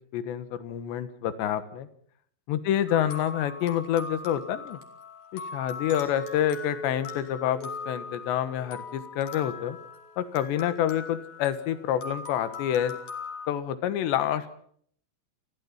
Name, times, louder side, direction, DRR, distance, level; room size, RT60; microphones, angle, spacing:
voice 1, 0.1-1.9 2.5-4.8 5.3-9.8 10.2-12.9 13.5-14.6, left 10 dB, 70° left, 13 dB, 3.3 m, -28 dB
sound 1, 2.9-13.5, left 5 dB, 40° left, 3.2 m, -41 dB
Chink clink, 5.9-10.2 10.7-11.1, right 6 dB, 75° right, 4.7 m, -45 dB
29.5 x 15.0 x 7.2 m, 0.62 s
omnidirectional pair, 5.6 m